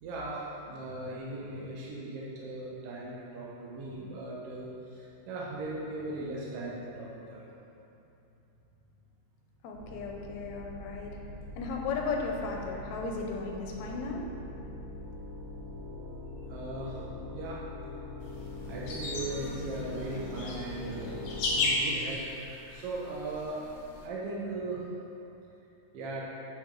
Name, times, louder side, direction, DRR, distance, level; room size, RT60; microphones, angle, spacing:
voice 1, 0.0-7.5 16.5-17.0 17.3-17.6 18.7-22.2 22.7-23.6 24.0-24.9 25.9-26.2, right 2 dB, 65° right, -5 dB, 1.6 m, -38 dB
voice 2, 9.6-11.2 11.6-14.2, left 4 dB, 80° left, 0 dB, 2.0 m, -35 dB
sound 1, 9.7-21.7, left 2 dB, 85° right, 2.8 m, -42 dB
sound 2, 18.2-24.1, left 2 dB, 60° left, 1.6 m, -35 dB
8.3 x 6.1 x 3.7 m, 2.8 s
omnidirectional pair, 3.3 m